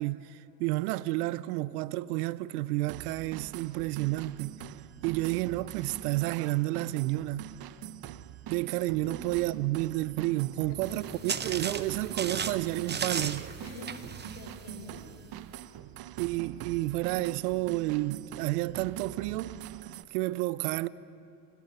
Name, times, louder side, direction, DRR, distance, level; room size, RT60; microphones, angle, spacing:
voice 1, 0.0-4.6 5.0-7.4 8.5-13.5 16.2-19.6 20.1-20.9, right 18 dB, 85° right, 0.7 m, -30 dB
sound 1, 2.9-20.0, right 12 dB, 55° right, 0.9 m, -44 dB
voice 2, 9.0-9.5 10.7-11.0 12.2-12.5 13.6-15.1, left 2 dB, 65° left, 6.3 m, -47 dB
sound 2, 10.8-15.2, right 6 dB, 25° right, 1.0 m, -36 dB
29.5 x 18.0 x 5.7 m
supercardioid pair, 85°, 44 cm